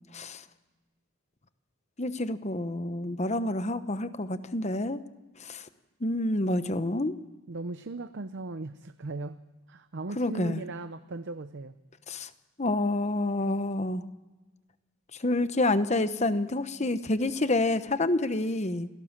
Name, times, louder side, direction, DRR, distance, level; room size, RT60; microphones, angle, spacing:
voice 1, 0.1-0.4 2.0-5.0 5.4-5.7 6.0-7.1 10.2-10.6 12.1-12.3 12.6-14.0 15.1-18.9, left 2 dB, 30° left, 1.0 m, -28 dB
voice 2, 7.5-9.4 9.7-11.7, right 2 dB, 55° right, 0.7 m, -38 dB
27.5 x 17.5 x 7.4 m
head